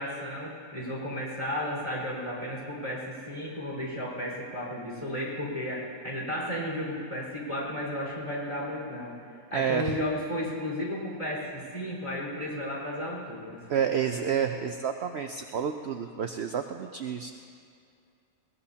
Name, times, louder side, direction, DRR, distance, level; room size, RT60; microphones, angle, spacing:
voice 1, 0.0-9.2 9.5-13.7, left 1 dB, 25° left, -4 dB, 4.7 m, -33 dB
voice 2, 9.5-9.9 13.7-17.3, right 8 dB, 60° right, 6 dB, 0.8 m, -29 dB
21.0 x 19.5 x 2.9 m, 2.4 s
omnidirectional pair, 1.5 m